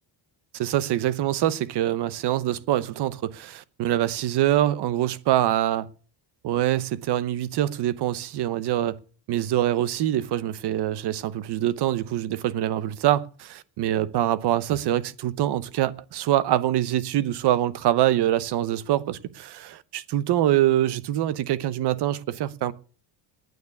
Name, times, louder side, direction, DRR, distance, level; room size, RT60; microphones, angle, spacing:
voice 1, 0.5-5.9 6.4-9.0 9.3-22.7, right 12 dB, 55° right, 1.0 m, -24 dB
9.4 x 9.4 x 9.5 m
cardioid pair, 165°, 49 cm